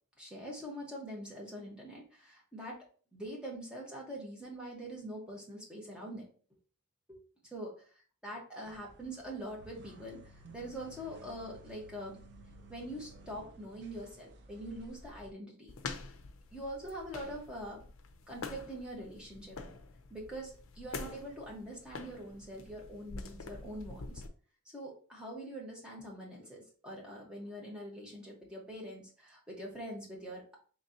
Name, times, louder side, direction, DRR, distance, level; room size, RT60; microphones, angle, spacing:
voice 1, 0.2-2.8 3.1-6.3 7.1-7.2 7.5-7.7 8.2-12.2 12.7-15.7 16.5-17.8 18.3-19.6 20.1-24.2 24.6-30.6, right 1 dB, 5° right, -3 dB, 1.0 m, -44 dB
sound 1, 8.6-15.3, right 1 dB, 50° right, 0.5 m, -55 dB
sound 2, 15.7-24.3, left 3 dB, 65° left, 0.5 m, -46 dB
4.2 x 3.2 x 2.7 m, 0.42 s
head